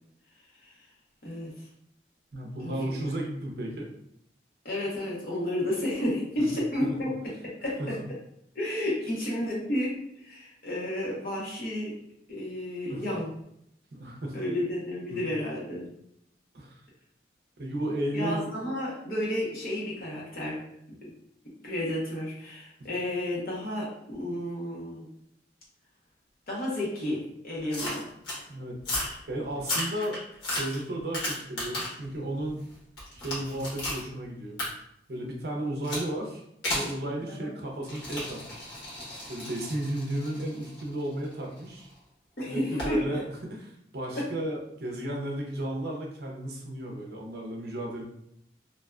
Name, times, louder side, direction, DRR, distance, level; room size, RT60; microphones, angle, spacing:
voice 1, 1.2-1.7 2.6-3.0 4.6-8.0 8.5-11.9 12.3-13.3 14.3-15.9 18.1-20.6 21.0-21.1 21.6-25.1 26.5-28.1 37.3-37.5 42.4-43.2 44.1-44.2, left 1 dB, 50° left, -5 dB, 0.9 m, -32 dB
voice 2, 2.3-3.9 6.4-6.5 6.8-7.0 7.8-7.9 12.9-13.0 13.9-14.4 15.1-15.2 16.5-16.7 17.6-18.5 22.8-22.9 28.5-28.8 29.3-30.2 30.6-32.6 33.1-34.6 35.1-36.4 36.7-38.7 39.3-41.9 42.5-48.0, right 1 dB, 60° right, -1 dB, 0.6 m, -34 dB
sound 1, 27.7-28.4 28.8-29.2 29.6-32.0 32.5-34.0 34.6-34.7 35.8-36.1 36.6-36.9 37.8-41.8 42.8-43.0, left 1 dB, 75° left, 1.1 m, -34 dB
2.6 x 2.2 x 2.3 m, 0.74 s
head